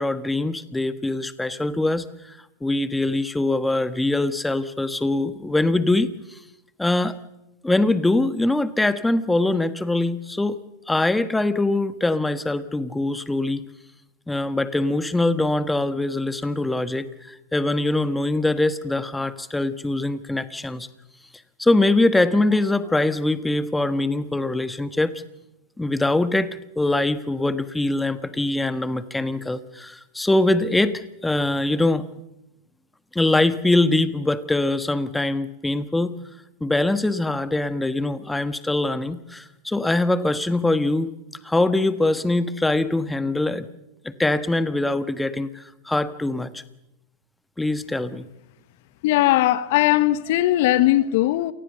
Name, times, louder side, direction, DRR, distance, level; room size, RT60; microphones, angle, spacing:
voice 1, 0.0-6.4 6.8-7.2 7.6-10.6 10.9-13.6 14.3-20.9 21.6-25.2 25.8-32.0 33.1-36.2 36.6-41.1 41.4-43.7 44.0-46.6 47.6-48.3, left 2 dB, 10° left, 1.4 m, -23 dB
voice 2, 49.0-51.5, left 15 dB, 60° left, 1.1 m, -19 dB
28.0 x 19.5 x 6.9 m
hypercardioid pair, 100°, 0 cm